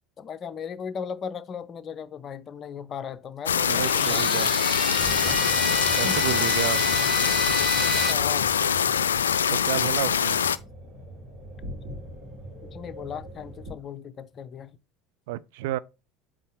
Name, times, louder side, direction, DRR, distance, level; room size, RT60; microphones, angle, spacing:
voice 1, 0.2-4.3 5.2-5.4 6.0-6.2 8.1-8.5 12.6-14.8, left 7 dB, 35° left, 0.6 m, -37 dB
sound 1, 3.5-10.6, left 8 dB, 75° left, 0.3 m, -24 dB
sound 2, 3.7-8.1, right 1 dB, 5° right, 0.6 m, -30 dB
voice 2, 3.7-4.5 5.9-6.8 9.5-10.4 15.3-15.8, right 14 dB, 60° right, 0.3 m, -30 dB
sound 3, 4.9-13.7, equal, 45° right, 2.8 m, -41 dB
8.3 x 3.7 x 4.6 m
figure-of-eight pair, 70°, 0 cm